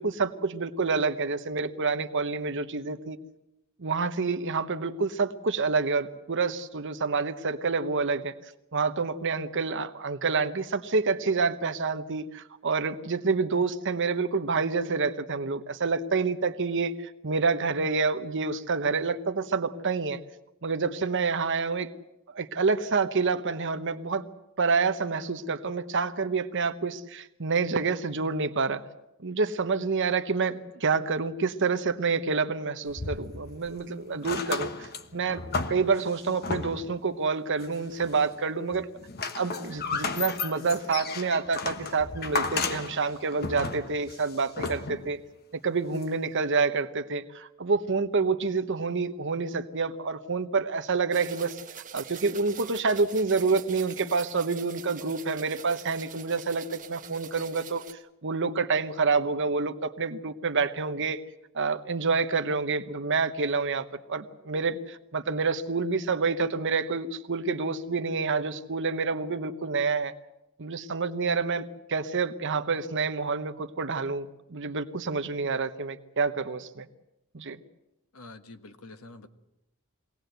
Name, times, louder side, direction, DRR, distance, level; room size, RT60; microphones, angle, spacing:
voice 1, 0.0-3.2 3.8-8.3 8.7-20.2 20.6-21.9 22.3-24.2 24.6-28.8 29.2-35.4 35.7-38.9 39.3-45.2 45.6-51.6 51.9-57.8 58.2-61.2 61.5-70.1 70.6-76.9 77.3-77.6, right 4 dB, 60° right, 10 dB, 1.0 m, -28 dB
sound 1, 32.9-33.8 34.1-37.0 37.6-38.4 38.7-45.2 46.0-46.1, left 4 dB, 50° left, 1.2 m, -34 dB
sound 2, 51.1-57.9, right 7 dB, 40° right, 1.4 m, -44 dB
voice 2, 78.1-79.3, left 2 dB, 80° left, 8 dB, 1.5 m, -46 dB
23.5 x 18.0 x 8.0 m, 0.90 s
head